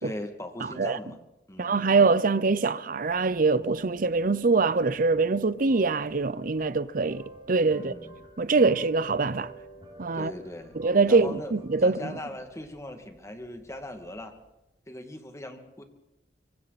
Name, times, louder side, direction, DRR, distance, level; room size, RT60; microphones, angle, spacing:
voice 1, 0.0-1.2 1.5-1.8 7.7-8.1 8.6-8.8 10.1-10.8 11.1-11.5 11.8-14.3 14.9-15.8, left 1 dB, 15° left, 2.3 m, -39 dB
voice 2, 0.6-1.0 1.6-7.9 8.4-9.5 10.0-10.3 10.7-12.2, right 4 dB, 55° right, 0.7 m, -24 dB
sound 1, 2.9-14.5, right 2 dB, 30° right, 5.5 m, -51 dB
25.0 x 25.0 x 4.2 m
head